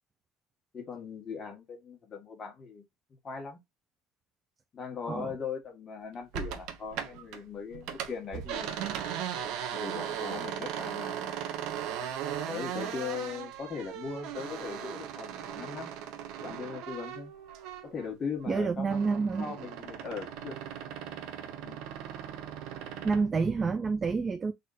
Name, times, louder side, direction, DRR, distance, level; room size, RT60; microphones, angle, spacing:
voice 1, 0.7-2.8 3.2-3.6 4.7-8.8 9.7-11.5 12.5-15.9 16.4-17.3 17.8-20.7 21.6-21.8, left 5 dB, 30° left, 1.8 m, -39 dB
sound 1, 6.3-7.4 7.7-18.1 18.4-23.3, right 9 dB, 70° right, 0.9 m, -38 dB
voice 2, 18.5-19.6 23.0-24.5, right 4 dB, 25° right, 0.5 m, -28 dB
4.2 x 2.5 x 4.1 m
cardioid pair, 135°, 0 cm